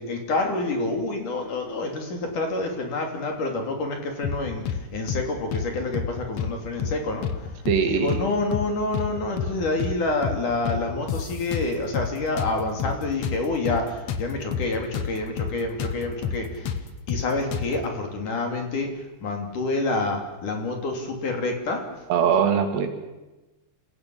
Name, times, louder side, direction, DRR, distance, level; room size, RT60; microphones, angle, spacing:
voice 1, 0.0-7.5 7.8-16.8 17.1-21.8, left 2 dB, 50° left, 3 dB, 4.3 m, -28 dB
sound 1, 4.2-4.8 5.1-5.2 5.5-6.5 6.8-7.0 7.2-8.2 8.5-8.7 8.9-10.0 10.2-10.4 10.7-12.1 12.4-15.1 15.4-15.5 15.8-17.8, left 7 dB, 65° left, 1.6 m, -29 dB
voice 2, 7.7-8.2 22.1-22.9, right 7 dB, 80° right, 6 dB, 4.3 m, -21 dB
27.5 x 17.0 x 8.7 m, 1.1 s
omnidirectional pair, 4.9 m